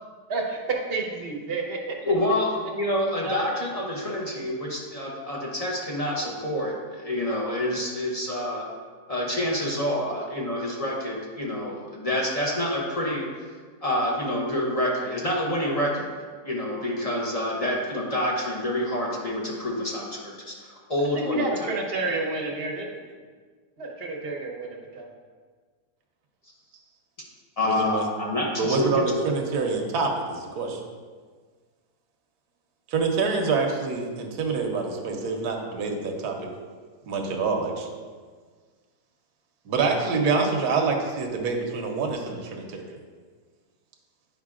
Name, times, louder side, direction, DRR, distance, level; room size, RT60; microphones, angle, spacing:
voice 1, 0.3-1.9 3.2-3.5 21.1-22.9 23.8-25.1, right 3 dB, 45° right, 1 dB, 0.9 m, -30 dB
voice 2, 2.0-8.6 9.1-13.5 13.8-16.1 16.4-21.7 27.6-29.3, left 1 dB, 30° left, -3 dB, 0.8 m, -27 dB
voice 3, 27.6-28.1 28.6-30.8 32.9-36.5 37.1-37.9 39.7-42.8, right 4 dB, 75° right, 1 dB, 1.3 m, -26 dB
9.1 x 5.3 x 2.4 m, 1.6 s
omnidirectional pair, 1.8 m